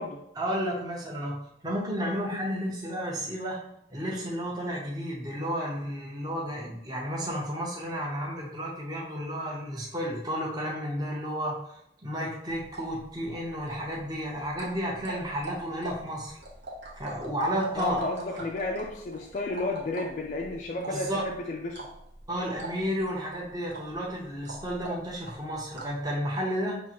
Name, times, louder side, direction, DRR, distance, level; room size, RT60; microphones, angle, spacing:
voice 1, 0.4-1.4 1.6-3.6 3.9-11.6 12.0-16.4 17.0-18.0 18.3-18.4 20.9-21.3 22.3-26.8, equal, 20° right, 0.7 m, -32 dB
sound 1, 12.5-26.1, right 2 dB, 80° right, 1.0 m, -43 dB
voice 2, 17.8-21.9, left 2 dB, 40° left, 0.3 m, -32 dB
6.0 x 2.5 x 2.9 m
head